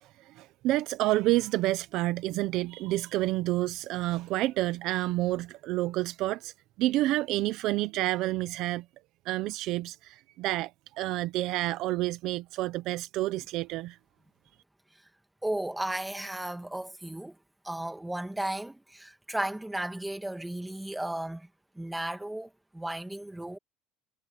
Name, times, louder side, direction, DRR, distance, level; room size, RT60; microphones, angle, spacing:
voice 1, 0.0-8.9 9.3-14.0, right 17 dB, 50° right, 0.6 m, -29 dB
voice 2, 15.4-17.3 17.6-21.5 21.7-23.6, right 1 dB, 5° right, 1.6 m, -34 dB
cardioid pair, 175°, 0 cm